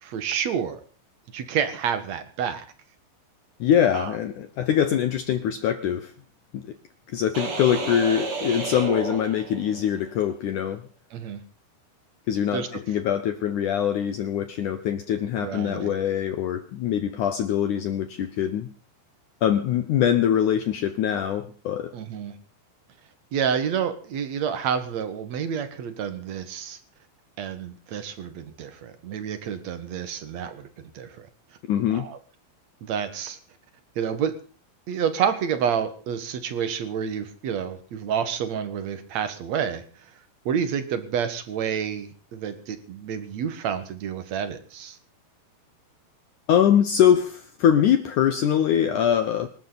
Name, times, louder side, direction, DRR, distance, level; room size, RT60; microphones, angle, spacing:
voice 1, 0.0-0.8 1.3-2.6 3.9-4.1 11.1-11.4 12.5-12.7 15.4-16.0 21.9-22.3 23.3-26.8 27.4-31.3 31.9-32.2 32.8-33.4 34.0-34.4 34.9-39.8 40.5-45.0, right 8 dB, 55° right, 2.0 m, -29 dB
voice 2, 3.6-6.1 6.5-6.7 7.1-10.8 12.3-18.7 19.4-21.9 31.7-32.1 46.5-49.5, left 9 dB, 85° left, 1.7 m, -23 dB
sound 1, 7.3-10.0, right 4 dB, 35° right, 2.9 m, -31 dB
25.5 x 13.0 x 4.1 m
omnidirectional pair, 5.1 m